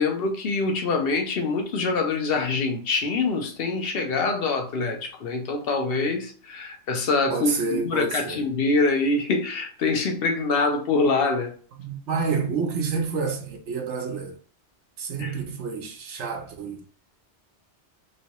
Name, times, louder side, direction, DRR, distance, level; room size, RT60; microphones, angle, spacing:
voice 1, 0.0-11.5 15.2-15.4, left 3 dB, 60° left, 0.9 m, -25 dB
voice 2, 7.3-8.4 11.8-14.3 15.0-16.8, right 5 dB, 80° right, 1.0 m, -28 dB
3.1 x 2.7 x 2.9 m
omnidirectional pair, 1.2 m